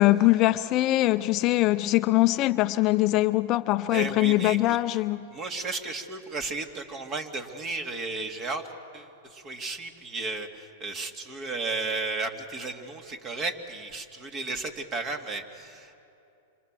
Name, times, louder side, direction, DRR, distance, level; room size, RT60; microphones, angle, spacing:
voice 1, 0.0-5.3, left 17 dB, 40° left, 0.6 m, -22 dB
voice 2, 3.9-4.8 5.3-15.9, right 3 dB, 35° right, 2.7 m, -34 dB
27.5 x 26.5 x 7.7 m
hypercardioid pair, 110°, 0 cm